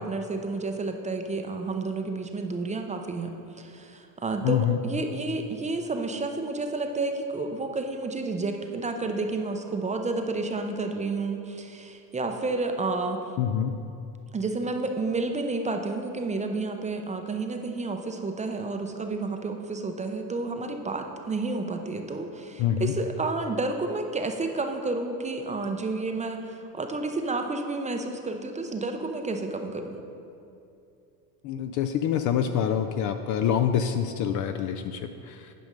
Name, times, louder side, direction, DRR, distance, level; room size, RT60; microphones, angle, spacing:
voice 1, 0.0-3.3 3.6-13.2 14.3-30.0, right 3 dB, 15° right, 4 dB, 0.5 m, -30 dB
voice 2, 4.4-4.8 13.4-13.7 22.6-22.9 31.4-35.5, left 9 dB, 40° left, 8 dB, 0.4 m, -26 dB
9.3 x 5.3 x 5.2 m, 2.7 s
supercardioid pair, 95°, 49 cm